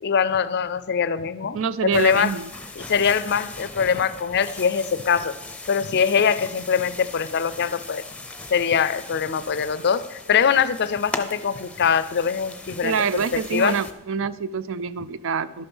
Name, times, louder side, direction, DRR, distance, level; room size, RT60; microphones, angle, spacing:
voice 1, 0.0-2.3 2.8-5.4 5.7-8.0 8.5-13.8, left 7 dB, 50° left, 15 dB, 0.5 m, -23 dB
voice 2, 1.5-2.5 12.8-15.6, right 6 dB, 60° right, 17 dB, 0.4 m, -26 dB
sound 1, 1.9-13.9, left 2 dB, 5° left, 0.7 m, -39 dB
11.5 x 6.7 x 6.2 m, 0.97 s
head